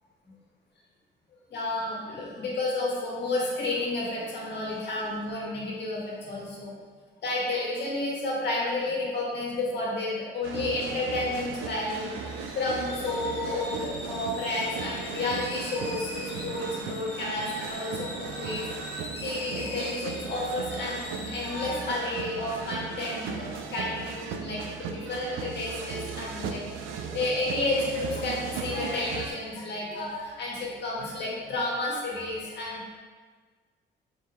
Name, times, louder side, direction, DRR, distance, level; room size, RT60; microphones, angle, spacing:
voice 1, 1.5-6.7 7.2-12.1 12.5-18.7 19.2-26.6 26.9-33.0, left 2 dB, 60° left, -4 dB, 1.4 m, -31 dB
sound 1, 10.4-29.3, right 6 dB, 90° right, 0.4 m, -37 dB
sound 2, 11.7-23.9, left 2 dB, 30° left, 0.8 m, -43 dB
4.7 x 3.7 x 3.0 m, 1.5 s
cardioid pair, 90°, 20 cm